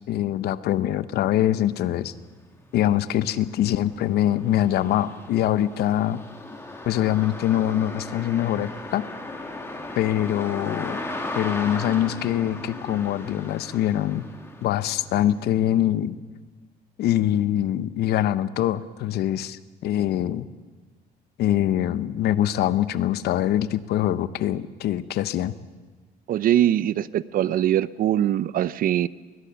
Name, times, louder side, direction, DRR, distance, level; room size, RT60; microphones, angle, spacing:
voice 1, 0.1-2.1 2.7-6.2 6.8-9.0 10.0-11.0 11.3-14.2 14.6-16.2 17.0-20.5 21.4-25.5, left 12 dB, 70° left, 15 dB, 0.9 m, -24 dB
sound 1, 2.0-2.1 2.5-15.4, left 2 dB, 15° left, 2.8 m, -37 dB
voice 2, 26.3-29.1, right 11 dB, 60° right, 18 dB, 0.6 m, -22 dB
21.0 x 19.5 x 7.0 m, 1.4 s
cardioid pair, 110°, 17 cm